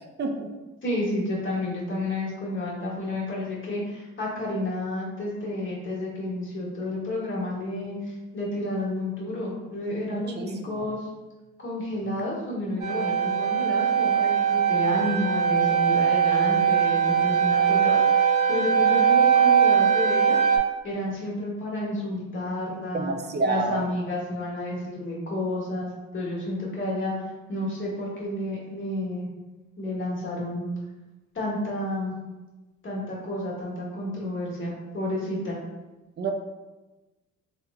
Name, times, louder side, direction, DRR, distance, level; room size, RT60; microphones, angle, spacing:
voice 1, 0.2-0.5 10.1-10.9 22.9-23.8 36.2-36.3, right 3 dB, 35° right, 4 dB, 0.4 m, -29 dB
voice 2, 0.8-11.1 11.6-18.2 18.5-20.4 20.8-23.1 23.4-27.1 27.5-29.3 29.8-30.6 31.3-32.1 32.8-35.6, left 1 dB, 40° left, -5 dB, 1.3 m, -30 dB
sound 1, 12.8-20.6, right 7 dB, 70° right, 0.9 m, -21 dB
3.2 x 2.1 x 3.5 m, 1.1 s
cardioid pair, 90°, 30 cm